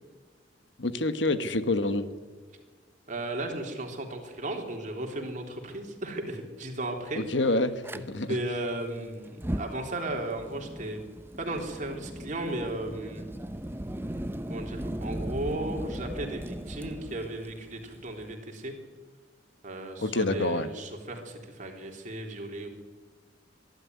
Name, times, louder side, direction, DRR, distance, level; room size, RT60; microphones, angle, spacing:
voice 1, 0.8-2.1 7.1-8.3 20.0-20.7, left 2 dB, 75° left, 11 dB, 1.4 m, -27 dB
voice 2, 3.1-7.5 7.9-11.0 11.4-13.2 14.5-18.7 19.6-22.7, right 1 dB, 45° right, 2 dB, 3.6 m, -35 dB
Fire, 7.8-8.0 9.3-18.3, right 1 dB, 10° right, 0.7 m, -37 dB
23.5 x 12.0 x 9.6 m, 1.5 s
head